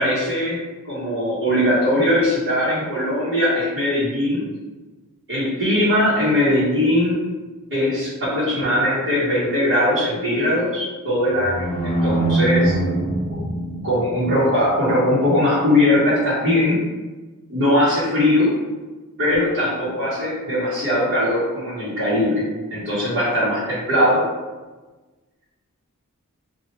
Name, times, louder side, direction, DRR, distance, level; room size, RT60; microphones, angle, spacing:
voice 1, 0.0-4.4 5.3-7.2 7.7-12.7 13.8-16.8 17.5-18.5 19.2-22.4 22.7-24.2, left 1 dB, 50° right, -12 dB, 1.1 m, -20 dB
sound 1, 11.3-14.4, right 1 dB, 25° left, 0.8 m, -23 dB
3.1 x 2.3 x 2.8 m, 1.2 s
head